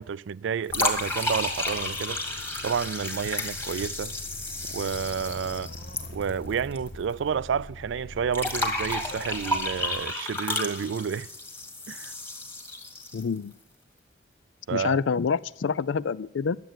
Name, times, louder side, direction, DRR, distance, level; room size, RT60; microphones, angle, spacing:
voice 1, 0.0-2.3 2.6-4.1 4.7-5.7 6.1-11.3 11.9-12.1 14.7-15.0, right 7 dB, 70° right, 0.3 m, -30 dB
sound 1, 0.7-10.0, left 1 dB, 55° left, 0.8 m, -44 dB
sound 2, 0.7-6.9 7.1-7.2 8.3-13.4, left 1 dB, 10° left, 1.8 m, -32 dB
voice 2, 13.1-13.5 14.7-16.6, left 5 dB, 75° left, 0.4 m, -27 dB
11.5 x 7.6 x 8.8 m
head